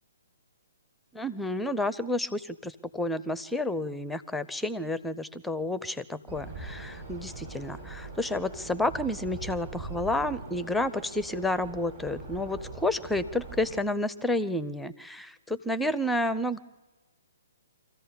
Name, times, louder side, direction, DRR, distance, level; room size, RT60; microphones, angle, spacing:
voice 1, 1.1-16.6, left 1 dB, 5° left, 16 dB, 0.7 m, -30 dB
sound 1, 6.3-13.8, right 3 dB, 50° right, 7.5 m, -42 dB
25.0 x 14.5 x 8.4 m, 1.2 s
figure-of-eight pair, 125°, 0 cm